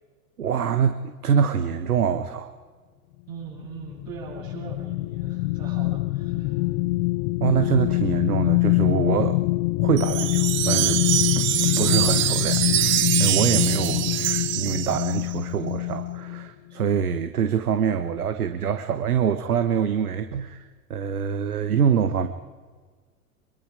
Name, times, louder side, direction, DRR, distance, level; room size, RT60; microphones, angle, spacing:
voice 1, 0.4-2.5 7.4-9.4 9.8-11.0 11.4-20.6 20.9-22.3, right 7 dB, 75° right, 10 dB, 1.1 m, -25 dB
voice 2, 3.3-6.6, right 7 dB, 60° right, -3 dB, 8.0 m, -41 dB
sound 1, 3.5-16.5 16.9-17.1, left 20 dB, 40° left, 0.8 m, -25 dB
Wind chime, 10.0-15.3, right 15 dB, 25° right, 0.6 m, -24 dB
24.5 x 23.0 x 5.0 m, 1.5 s
figure-of-eight pair, 90°, 44 cm